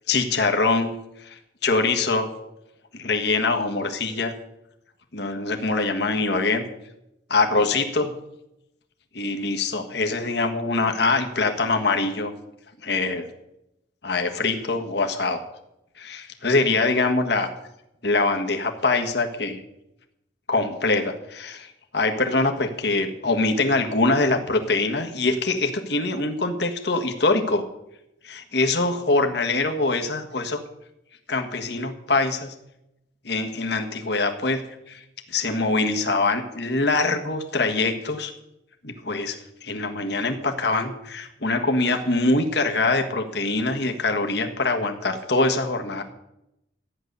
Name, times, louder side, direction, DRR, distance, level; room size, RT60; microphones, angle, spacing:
voice 1, 0.1-0.9 1.2-2.3 2.9-4.3 5.1-6.6 7.3-8.1 9.1-12.3 12.8-13.3 14.0-15.4 16.0-17.5 18.0-19.6 20.5-21.7 21.9-27.6 28.2-30.6 31.3-32.5 33.2-35.0 35.3-38.3 38.8-46.0, left 3 dB, 60° left, 4 dB, 1.5 m, -23 dB
14.0 x 10.0 x 6.8 m, 0.87 s
head